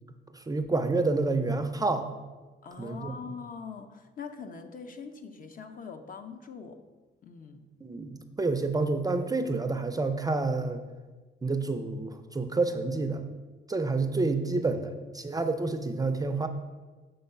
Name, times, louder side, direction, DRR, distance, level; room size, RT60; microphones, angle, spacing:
voice 1, 0.3-2.1 2.8-3.1 7.8-10.8 11.4-13.2 13.7-16.5, right 3 dB, 20° right, 8 dB, 0.5 m, -29 dB
voice 2, 2.6-6.8 7.2-7.6 14.6-15.1, left 5 dB, 45° left, 7 dB, 0.7 m, -43 dB
7.0 x 3.8 x 5.5 m, 1.3 s
cardioid pair, 90°, 20 cm